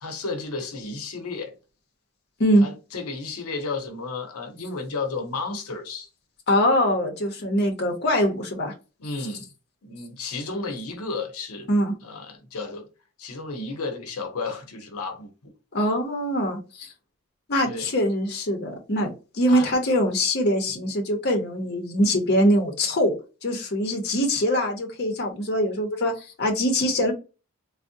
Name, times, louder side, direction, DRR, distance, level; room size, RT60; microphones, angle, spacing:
voice 1, 0.0-1.5 2.6-6.1 9.0-9.5 9.8-11.7 12.0-12.9 13.2-15.5 17.6-17.9 19.5-19.7, left 3 dB, 85° left, 0.7 m, -33 dB
voice 2, 6.5-8.7 11.7-11.9 15.7-16.9 17.5-23.2 23.4-27.1, equal, 50° left, 0.7 m, -23 dB
3.5 x 2.0 x 2.6 m
head